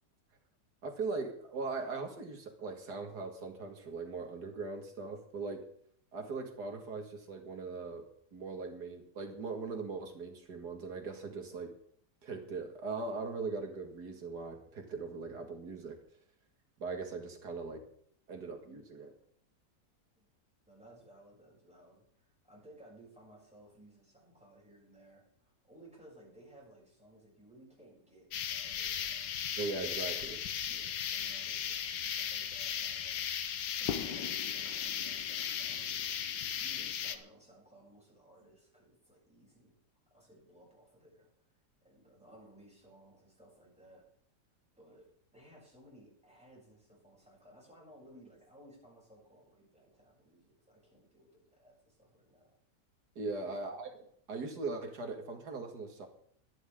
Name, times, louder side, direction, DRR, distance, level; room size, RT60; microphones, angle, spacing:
voice 1, 0.8-5.6 6.1-8.0 8.3-11.7 12.2-16.0 16.8-17.8 18.3-19.1 29.6-30.4 53.2-56.1, right 4 dB, 65° right, 4 dB, 2.6 m, -40 dB
voice 2, 20.7-29.4 30.6-39.7 40.1-41.3 41.8-44.0 44.8-52.5 53.4-53.8, right 1 dB, 5° right, -4 dB, 7.9 m, -59 dB
sound 1, 28.3-37.2, left 9 dB, 80° left, 1.6 m, -36 dB
22.0 x 10.0 x 3.8 m, 0.63 s
omnidirectional pair, 1.9 m